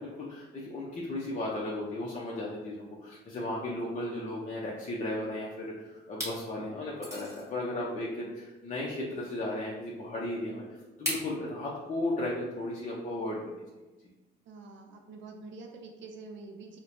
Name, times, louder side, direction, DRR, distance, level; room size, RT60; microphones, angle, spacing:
voice 1, 0.0-10.6 11.0-13.4, left 1 dB, 40° left, -5 dB, 0.6 m, -35 dB
sound 1, 5.3-5.7 6.1-6.4 7.0-7.5 9.0-9.1 11.1-11.3, equal, 15° right, 1.4 m, -36 dB
voice 2, 14.5-16.8, right 3 dB, 70° right, 2 dB, 0.5 m, -46 dB
4.3 x 2.1 x 2.6 m, 1.1 s
cardioid pair, 90°, 20 cm